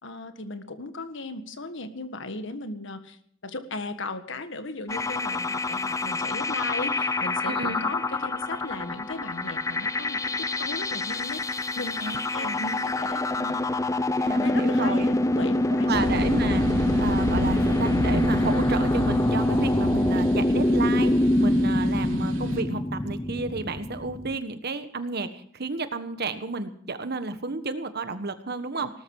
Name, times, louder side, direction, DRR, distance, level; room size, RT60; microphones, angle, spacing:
voice 1, 0.0-3.2 3.4-12.0 12.3-13.7 14.4-16.2 28.8-28.9, left 2 dB, 65° left, 9 dB, 1.7 m, -37 dB
sound 1, 4.9-24.4, left 1 dB, 15° left, 0.6 m, -25 dB
voice 2, 7.4-7.8 12.0-12.6 14.2-15.1 15.9-28.9, right 3 dB, 55° right, 10 dB, 1.4 m, -32 dB
sound 2, 15.9-22.6, equal, 70° right, 3.5 m, -30 dB
19.0 x 13.5 x 4.8 m, 0.62 s
head